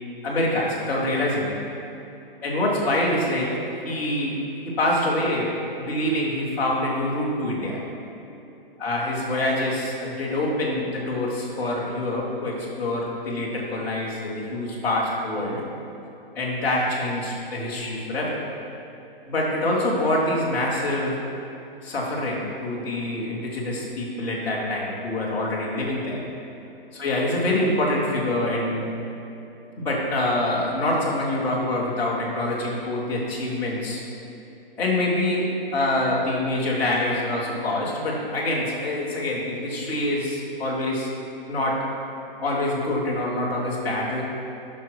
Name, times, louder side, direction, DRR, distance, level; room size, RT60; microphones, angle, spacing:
voice 1, 0.2-1.6 2.4-4.4 4.6-7.8 8.8-15.6 16.3-18.4 19.2-21.2 21.8-26.2 26.9-28.9 29.8-34.0 34.8-41.1 41.5-41.8 42.4-44.2, left 1 dB, 5° left, -9 dB, 1.0 m, -25 dB
11.0 x 6.1 x 4.7 m, 2.9 s
hypercardioid pair, 175°, 30 cm